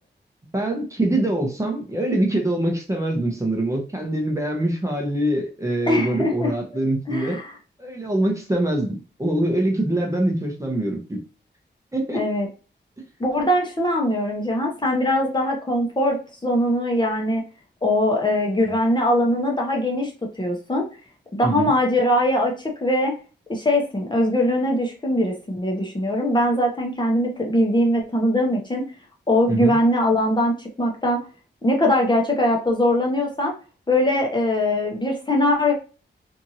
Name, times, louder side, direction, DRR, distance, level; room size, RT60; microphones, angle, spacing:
voice 1, 0.5-7.4 7.8-11.2 11.9-12.3 18.6-18.7 21.4-21.7 29.5-29.8, right 1 dB, 15° right, 1 dB, 0.7 m, -24 dB
voice 2, 5.9-6.5 7.1-7.5 12.1-12.5 13.2-16.2 16.4-17.4 17.8-20.1 20.4-20.9 21.3-23.2 23.5-28.8 29.3-31.2 31.6-33.5 33.9-35.7, left 1 dB, 25° left, 0 dB, 0.7 m, -21 dB
2.8 x 2.5 x 2.7 m, 0.35 s
wide cardioid pair, 105°, 19 cm